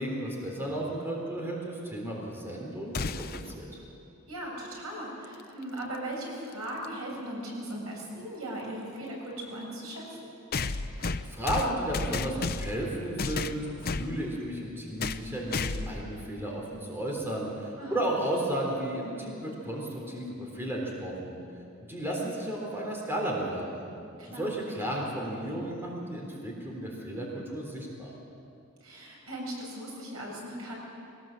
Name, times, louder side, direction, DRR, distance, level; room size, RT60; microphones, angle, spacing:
voice 1, 0.0-3.7 11.3-21.4 21.9-23.8 24.3-28.1, right 1 dB, 10° right, -2 dB, 3.7 m, -33 dB
sound 1, 2.9-3.5 5.6-5.7 6.8-6.9 10.5-12.8 13.2-14.1 15.0-15.3 15.5-16.0, left 4 dB, 45° left, 0.7 m, -32 dB
voice 2, 4.3-10.3 17.8-18.0 24.2-24.5 28.8-30.7, right 1 dB, 85° right, -3 dB, 7.1 m, -38 dB
22.0 x 19.0 x 7.7 m, 2.7 s
head